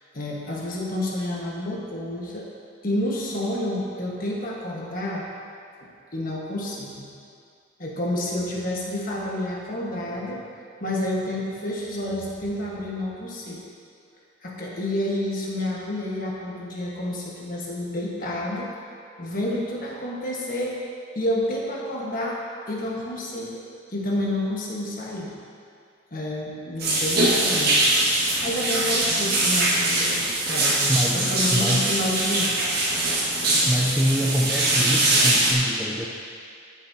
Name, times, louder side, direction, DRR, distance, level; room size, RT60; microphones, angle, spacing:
voice 1, 0.1-2.4 2.8-5.3 6.1-7.0 7.8-10.4 10.8-13.6 14.4-18.7 19.2-20.9 21.1-25.3 26.1-27.9 28.2-32.5 33.4-33.5, left 1 dB, 40° left, -3 dB, 1.4 m, -29 dB
sound 1, 26.8-35.5, right 2 dB, 50° right, 1.7 m, -22 dB
voice 2, 30.9-32.0 33.6-36.1, equal, 5° right, -2 dB, 0.5 m, -25 dB
14.0 x 7.3 x 2.8 m, 2.3 s
head